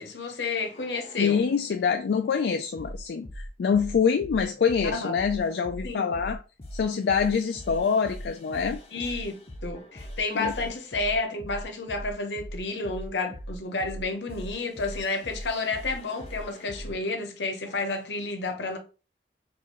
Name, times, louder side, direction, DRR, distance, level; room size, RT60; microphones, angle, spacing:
voice 1, 0.0-1.4 4.9-5.1 5.8-6.0 8.9-18.8, left 3 dB, 85° left, 0.9 m, -31 dB
sound 1, 0.6-1.6 2.3-17.0 17.6-18.0, equal, 35° left, 0.6 m, -41 dB
voice 2, 1.2-6.4 6.7-8.8 10.3-10.5, left 6 dB, 70° left, 0.3 m, -25 dB
4.5 x 2.6 x 3.0 m
head